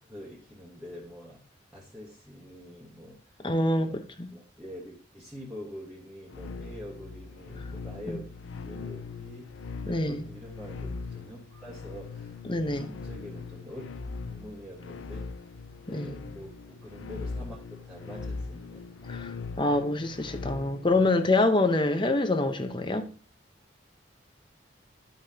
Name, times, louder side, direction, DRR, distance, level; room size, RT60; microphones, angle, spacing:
voice 1, 0.1-1.4 1.7-3.5 3.7-4.0 4.3-8.3 8.6-9.5 9.9-13.9 14.2-15.5 15.9-18.9, equal, 5° right, 1.5 m, -45 dB
voice 2, 3.4-4.3 8.1-8.2 9.9-10.2 12.5-12.9 15.9-16.1 19.1-23.1, left 2 dB, 25° left, 0.8 m, -26 dB
sound 1, 6.3-21.1, left 4 dB, 85° left, 0.5 m, -40 dB
11.5 x 5.7 x 2.8 m
head